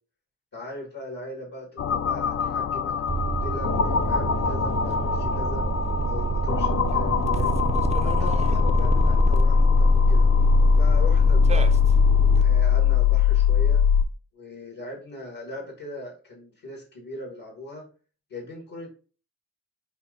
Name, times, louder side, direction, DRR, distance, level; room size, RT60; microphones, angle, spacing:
voice 1, 0.5-3.0 3.4-5.7 6.0-7.7 8.0-10.3 10.8-11.8 12.4-13.8 14.3-17.9 18.3-18.9, left 1 dB, 70° left, -1 dB, 2.3 m, -39 dB
sound 1, 1.8-14.0, left 6 dB, 45° left, 0.4 m, -21 dB
sound 2, 3.1-12.4, right 4 dB, 20° right, 0.4 m, -28 dB
4.3 x 2.6 x 3.8 m, 0.38 s
cardioid pair, 40°, 34 cm